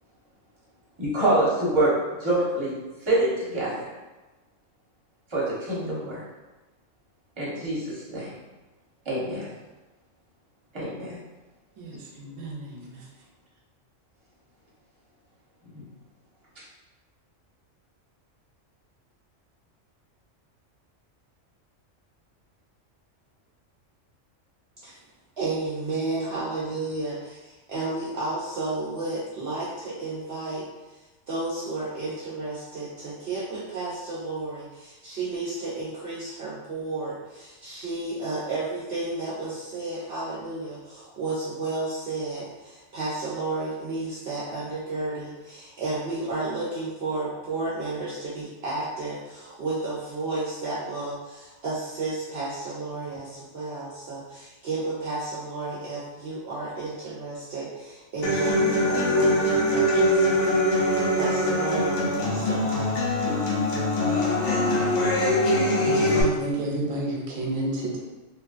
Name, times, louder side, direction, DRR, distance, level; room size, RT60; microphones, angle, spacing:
voice 1, 1.0-2.8 3.1-3.9 5.3-6.2 7.4-8.3 9.1-9.5 10.7-11.2 12.7-12.8 15.7-15.8, right 1 dB, 25° right, -7 dB, 0.9 m, -25 dB
voice 2, 11.8-13.1 65.5-68.0, right 2 dB, 85° right, -1 dB, 1.0 m, -31 dB
voice 3, 25.4-30.6 31.3-62.9, right 2 dB, 60° right, -7 dB, 0.8 m, -32 dB
Human voice / Acoustic guitar, 58.2-66.2, left 1 dB, 70° left, 0.9 m, -23 dB
3.0 x 2.5 x 2.4 m, 1.1 s
omnidirectional pair, 1.3 m